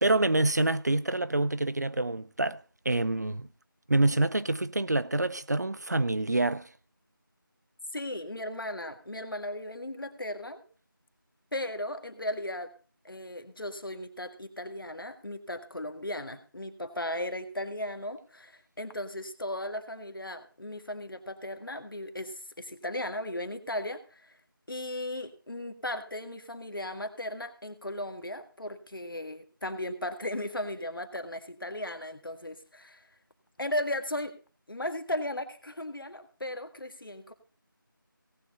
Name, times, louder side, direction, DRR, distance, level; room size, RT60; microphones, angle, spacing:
voice 1, 0.0-3.5 3.9-6.7, right 2 dB, 50° right, 0.6 m, -27 dB
voice 2, 7.9-10.6 11.5-12.7 13.0-24.4 24.7-33.0 33.6-34.3 34.7-37.3, left 1 dB, 70° left, 1.7 m, -36 dB
18.0 x 7.1 x 4.1 m
figure-of-eight pair, 175°, 12 cm